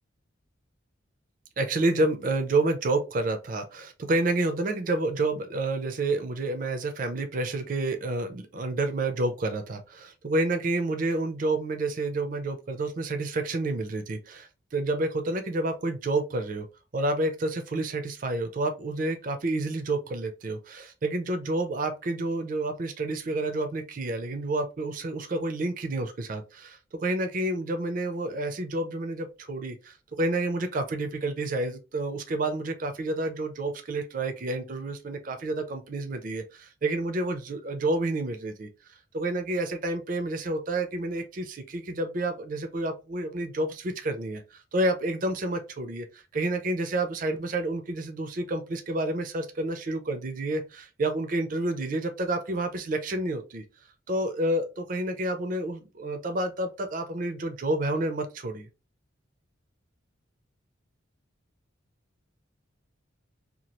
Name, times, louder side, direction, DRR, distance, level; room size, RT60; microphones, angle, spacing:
voice 1, 1.6-16.7 16.9-38.7 39.1-53.6 54.1-58.7, right 2 dB, 40° right, 0.4 m, -29 dB
2.8 x 2.3 x 2.9 m
head